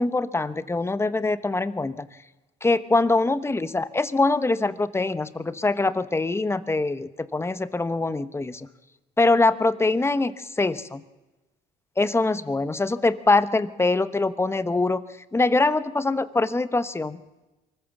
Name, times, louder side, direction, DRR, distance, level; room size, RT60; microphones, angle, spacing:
voice 1, 0.0-2.1 2.6-8.7 9.2-11.0 12.0-15.0 15.3-17.2, left 3 dB, 15° left, 14 dB, 0.9 m, -23 dB
24.0 x 14.5 x 7.3 m, 1.1 s
cardioid pair, 110°, 17 cm